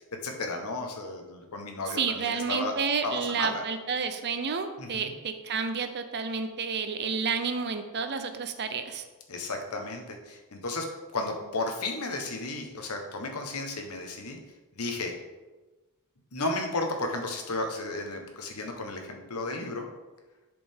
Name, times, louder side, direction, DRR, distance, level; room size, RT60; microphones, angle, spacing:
voice 1, 0.0-2.7 3.0-3.6 4.8-5.1 9.3-10.9 11.1-14.4 14.7-15.2 16.3-19.9, left 2 dB, 80° left, 3 dB, 1.2 m, -33 dB
voice 2, 2.0-9.0, right 5 dB, 50° right, 8 dB, 0.7 m, -30 dB
10.5 x 5.1 x 3.6 m, 1.2 s
head